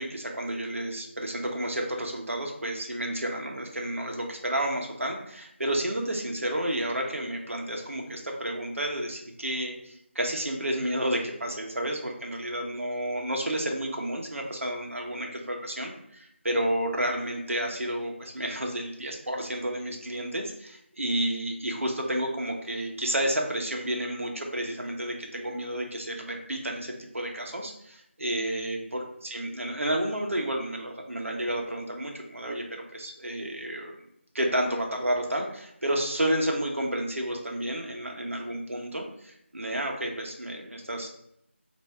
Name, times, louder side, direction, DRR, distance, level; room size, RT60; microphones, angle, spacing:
voice 1, 0.0-33.9 34.3-41.1, right 1 dB, 85° right, 1 dB, 0.9 m, -31 dB
4.1 x 2.6 x 3.4 m, 0.75 s
figure-of-eight pair, 170°, 7 cm